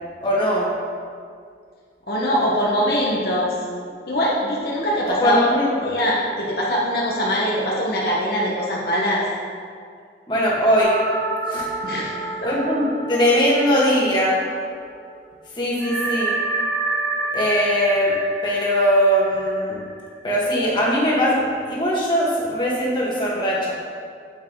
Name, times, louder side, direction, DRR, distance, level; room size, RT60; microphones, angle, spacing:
voice 1, 0.2-0.7 5.2-6.0 10.3-11.0 11.5-11.7 12.4-14.4 15.6-16.4 17.3-18.1 18.4-19.8 20.2-23.7, equal, 25° left, -5 dB, 1.8 m, -20 dB
voice 2, 2.1-3.6 4.1-5.5 5.8-9.2 11.8-12.5, equal, 60° left, -5 dB, 1.2 m, -22 dB
sound 1, 10.8-14.8 15.1-15.2 15.8-20.5, right 3 dB, 80° right, 1.0 m, -29 dB
9.0 x 8.5 x 3.2 m, 2.2 s
head